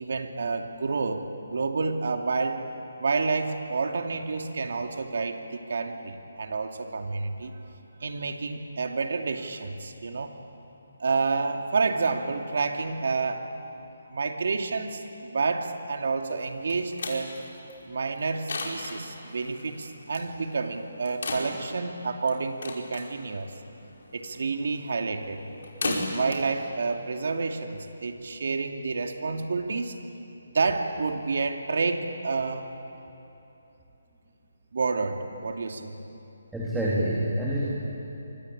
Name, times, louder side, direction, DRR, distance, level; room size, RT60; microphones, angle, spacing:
voice 1, 0.0-2.6 3.0-7.5 8.0-10.3 11.0-13.5 14.1-17.3 17.9-23.5 24.1-25.4 25.8-30.0 30.5-32.7 34.7-36.0, right 4 dB, 65° right, 4 dB, 2.6 m, -29 dB
sound 1, 16.4-27.8, left 2 dB, 65° left, 5.4 m, -38 dB
voice 2, 36.5-37.7, right 1 dB, 5° right, -8 dB, 3.2 m, -27 dB
28.0 x 24.0 x 8.7 m, 2.9 s
hypercardioid pair, 165°, 0 cm